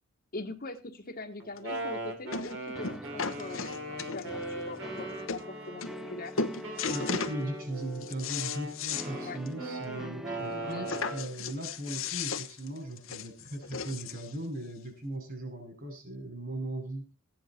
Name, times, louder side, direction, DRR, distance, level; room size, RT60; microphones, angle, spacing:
voice 1, 0.3-6.4 9.2-9.4 10.5-10.9, left 2 dB, 45° left, 5 dB, 1.4 m, -42 dB
Wind instrument woodwind instrument, 1.4-6.1 6.6-11.3, right 1 dB, 65° right, 3.4 m, -39 dB
sound 1, 1.6-1.7 2.3-2.6 2.8-4.4 5.0-5.1 5.3-5.4 5.8-6.1 6.4-7.4 7.8-9.1 9.5-9.6 9.9-10.0 10.9-14.3 15.1-15.2, left 5 dB, 70° left, 1.1 m, -35 dB
sound 2, 2.8-11.0, equal, ahead, 0.6 m, -44 dB
voice 2, 6.9-17.1, right 1 dB, 45° right, 6 dB, 6.4 m, -38 dB
15.5 x 10.0 x 4.4 m, 0.30 s
head